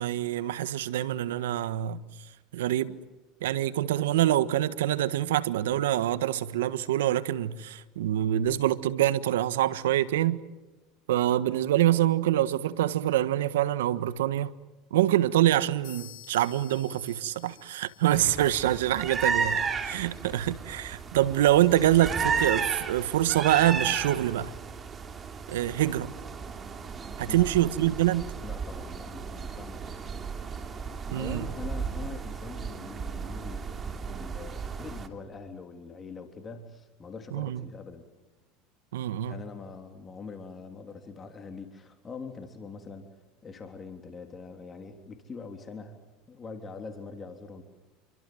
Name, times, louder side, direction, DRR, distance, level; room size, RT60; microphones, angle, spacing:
voice 1, 0.0-2.0 2.5-2.9 3.4-10.4 11.1-14.5 14.9-24.5 25.5-26.1 27.2-28.3 31.1-31.5 37.3-37.6 38.9-39.4, right 13 dB, 85° right, 1.4 m, -25 dB
sound 1, 15.8-19.6, left 13 dB, 65° left, 5.1 m, -52 dB
sound 2, 18.1-35.1, right 5 dB, 30° right, 3.1 m, -34 dB
voice 2, 28.4-30.1 31.1-38.1 39.3-43.1 43.4-46.0 46.3-47.6, left 4 dB, 25° left, 3.3 m, -43 dB
28.0 x 24.0 x 7.8 m
supercardioid pair, 100°, 0 cm